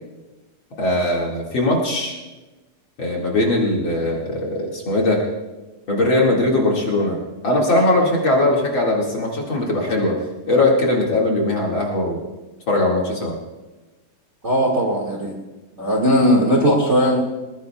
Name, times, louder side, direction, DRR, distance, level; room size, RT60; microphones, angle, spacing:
voice 1, 0.8-2.2 3.0-5.2 5.9-7.2 7.4-10.2 10.5-12.3 12.7-13.4, left 2 dB, 40° left, -3 dB, 2.3 m, -20 dB
voice 2, 14.4-15.4 15.8-17.2, equal, 30° right, 0 dB, 1.4 m, -18 dB
21.0 x 20.5 x 2.3 m, 1.1 s
omnidirectional pair, 3.8 m